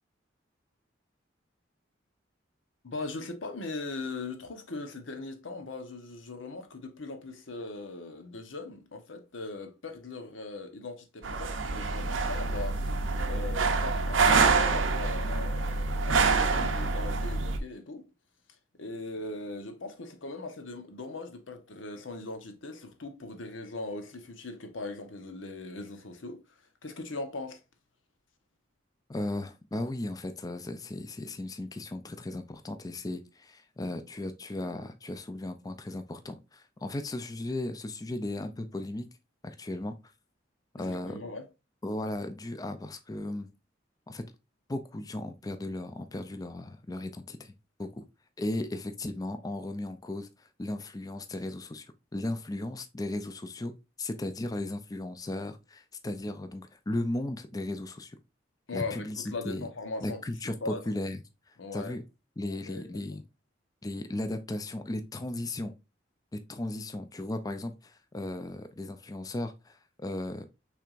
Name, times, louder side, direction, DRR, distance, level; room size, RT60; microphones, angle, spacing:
voice 1, 2.8-12.9 13.2-18.0 18.8-26.4 26.8-27.6 40.8-41.4 58.7-60.2 60.6-60.8 61.6-62.0 62.4-62.9, left 3 dB, 90° left, 1.0 m, -39 dB
sound 1, 11.2-17.6, right 4 dB, 90° right, 0.7 m, -26 dB
voice 2, 29.1-39.1 39.4-40.0 40.7-41.2 41.8-43.5 44.1-44.3 44.7-47.5 47.8-48.0 48.4-51.9 52.1-58.2 58.7-59.7 60.0-61.2 61.5-62.0 62.4-63.2 63.8-65.7 66.3-70.4, left 1 dB, 20° left, 0.4 m, -36 dB
5.9 x 3.4 x 2.5 m
head